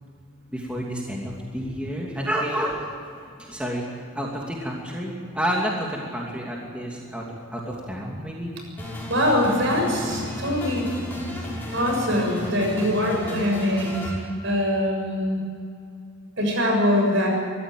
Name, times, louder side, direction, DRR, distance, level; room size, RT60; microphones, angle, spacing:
voice 1, 0.5-3.9 4.1-7.3 7.5-8.5, equal, 5° right, -2 dB, 2.7 m, -30 dB
sound 1, 8.8-14.1, left 1 dB, 10° left, 5.4 m, -32 dB
voice 2, 9.1-10.9 11.7-15.4 16.4-17.3, left 1 dB, 60° right, 1 dB, 7.0 m, -23 dB
23.5 x 14.5 x 9.3 m, 2.3 s
head